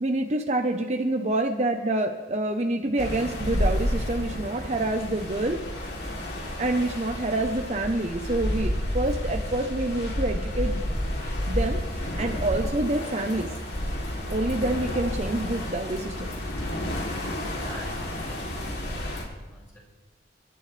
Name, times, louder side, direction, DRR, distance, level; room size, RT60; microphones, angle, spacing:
voice 1, 0.0-5.6 6.6-10.8 11.5-11.8 12.2-13.5 14.3-16.3, right 2 dB, 40° right, 4 dB, 1.0 m, -27 dB
sound 1, 3.0-19.2, equal, 65° left, 3.3 m, -30 dB
voice 2, 17.1-19.8, equal, 15° left, -6 dB, 6.3 m, -46 dB
29.5 x 12.0 x 3.4 m, 1.2 s
head